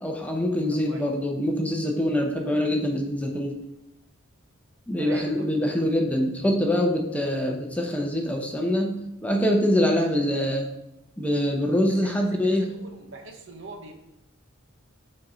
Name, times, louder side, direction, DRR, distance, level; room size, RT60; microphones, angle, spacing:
voice 1, 0.0-3.6 4.9-10.7 11.2-12.7, left 1 dB, 5° left, 1 dB, 0.7 m, -24 dB
voice 2, 0.7-1.1 5.0-5.5 11.9-13.9, right 2 dB, 60° right, 4 dB, 1.0 m, -42 dB
6.3 x 4.3 x 5.0 m, 0.90 s
head